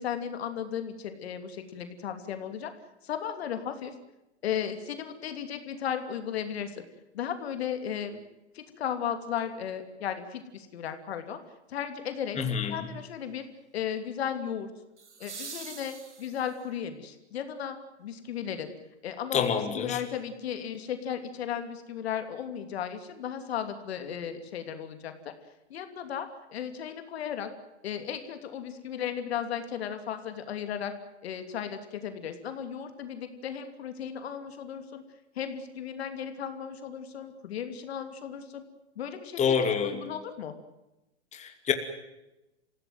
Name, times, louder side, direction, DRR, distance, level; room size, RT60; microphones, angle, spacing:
voice 1, 0.0-2.7 3.0-3.9 4.4-6.8 7.1-8.2 8.5-11.4 11.7-12.4 12.7-13.4 13.7-14.7 15.2-18.7 19.0-25.1 25.7-27.5 27.8-30.9 31.2-35.0 35.3-38.6 39.0-40.5, left 8 dB, 65° left, 8 dB, 3.0 m, -35 dB
sound 1, 9.3-9.4 15.0-16.8 18.9-19.0, right 5 dB, 90° right, 2.8 m, -44 dB
voice 2, 12.4-12.8 19.3-20.0 39.4-40.0 41.3-41.7, left 7 dB, 20° left, 6 dB, 2.7 m, -27 dB
26.5 x 16.5 x 9.3 m, 0.96 s
hypercardioid pair, 115°, 34 cm